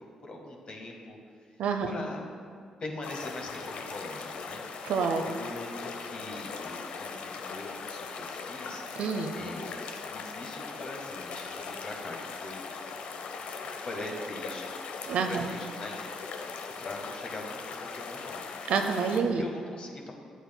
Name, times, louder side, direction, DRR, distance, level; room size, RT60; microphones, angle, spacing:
voice 1, 0.0-2.3 2.6-4.9 5.2-8.8 9.3-9.7 10.1-18.4 19.4-20.1, left 2 dB, 50° left, 1 dB, 1.4 m, -42 dB
sound 1, 3.0-19.2, left 5 dB, 65° left, 0.6 m, -39 dB
voice 2, 4.8-5.2 9.0-9.4 15.1-15.4 18.7-19.4, right 5 dB, 70° right, 5 dB, 0.5 m, -27 dB
10.0 x 8.1 x 2.2 m, 2.3 s
hypercardioid pair, 50°, 2 cm